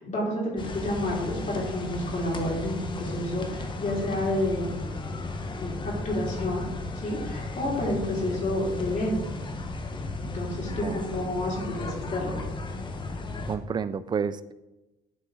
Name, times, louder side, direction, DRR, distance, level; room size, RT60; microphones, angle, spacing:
voice 1, 0.0-4.8 5.6-6.7 6.9-9.2 10.2-12.3, left 1 dB, 45° left, -4 dB, 2.6 m, -30 dB
sound 1, 0.6-13.6, left 2 dB, 30° left, 0.8 m, -35 dB
voice 2, 13.5-14.5, right 6 dB, 25° right, 14 dB, 0.3 m, -30 dB
11.0 x 3.8 x 3.7 m, 1.0 s
cardioid pair, 110°, 17 cm